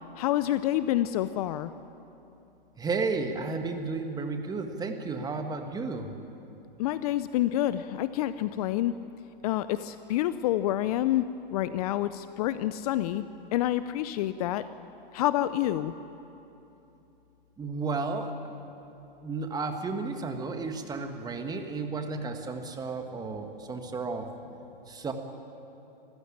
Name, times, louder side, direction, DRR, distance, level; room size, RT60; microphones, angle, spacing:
voice 1, 0.2-1.7 6.8-8.9 9.4-13.2 13.5-14.7 15.1-15.9, left 13 dB, 40° left, 14 dB, 0.6 m, -28 dB
voice 2, 2.8-6.1 17.6-18.3 19.2-24.3 24.9-25.1, right 4 dB, 15° right, 5 dB, 1.7 m, -33 dB
26.0 x 15.0 x 8.8 m, 2.9 s
hypercardioid pair, 125°, 29 cm